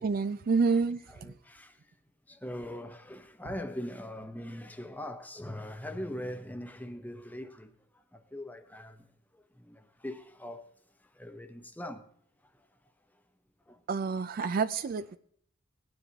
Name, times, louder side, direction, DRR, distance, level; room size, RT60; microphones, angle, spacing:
voice 1, 0.0-1.3 13.9-15.2, right 4 dB, 45° right, 0.4 m, -28 dB
voice 2, 1.2-2.0 2.3-9.1 9.3-10.7 11.0-12.1 12.4-12.7 13.7-13.8, left 1 dB, 10° left, 0.8 m, -42 dB
19.5 x 9.6 x 2.9 m
head